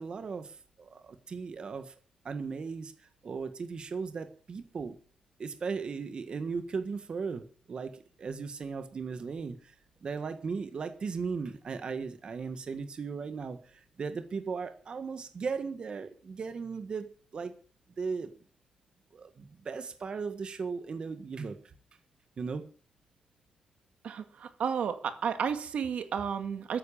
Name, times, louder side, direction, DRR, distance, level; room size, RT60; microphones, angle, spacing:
voice 1, 0.0-1.9 2.2-4.9 5.4-9.7 10.0-17.5 18.0-18.3 19.1-21.6 22.4-22.6, right 5 dB, 45° right, 1.6 m, -37 dB
voice 2, 24.0-26.8, right 7 dB, 80° right, 2.0 m, -32 dB
13.5 x 10.0 x 7.3 m
wide cardioid pair, 135°, 2 cm